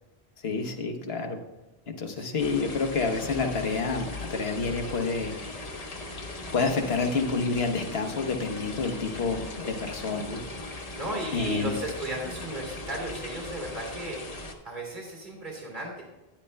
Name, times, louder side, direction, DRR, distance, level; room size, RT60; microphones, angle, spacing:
voice 1, 0.4-1.4 1.9-5.3 5.7-6.0 6.5-10.4 11.3-11.7, left 4 dB, 75° left, 5 dB, 1.3 m, -29 dB
voice 2, 2.1-2.4 9.0-9.3 11.0-14.2 14.6-16.0, right 1 dB, 50° right, -1 dB, 2.6 m, -36 dB
sound 1, 2.4-14.5, left 2 dB, 40° left, 1.0 m, -39 dB
13.5 x 9.8 x 2.2 m, 1.1 s
omnidirectional pair, 1.1 m